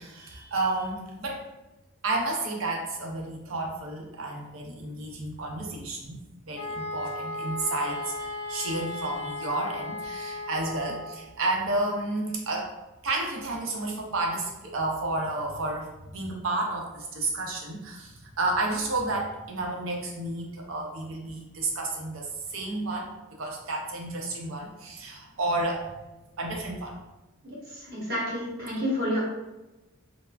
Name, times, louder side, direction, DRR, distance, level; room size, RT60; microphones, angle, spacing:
voice 1, 0.0-1.5 2.0-12.7 13.0-15.9 16.1-26.0 26.4-27.0, right 2 dB, 70° right, 0 dB, 0.5 m, -31 dB
sound 1, 6.5-11.2, left 2 dB, 50° left, 0.4 m, -36 dB
voice 2, 27.8-29.2, equal, 50° right, -5 dB, 0.9 m, -29 dB
3.2 x 2.1 x 2.3 m, 1.1 s
head